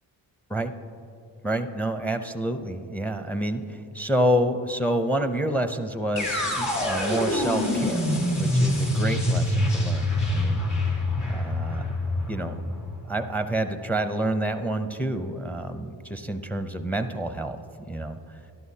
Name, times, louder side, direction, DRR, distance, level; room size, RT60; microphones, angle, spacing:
voice 1, 1.4-8.0 8.4-10.6 11.3-11.9 12.3-12.5 13.1-17.6 17.9-18.4, right 1 dB, 5° left, 8 dB, 0.6 m, -28 dB
sound 1, 6.2-14.1, left 1 dB, 80° left, 2.5 m, -26 dB
12.5 x 11.5 x 2.8 m, 2.7 s
cardioid pair, 55°, 45 cm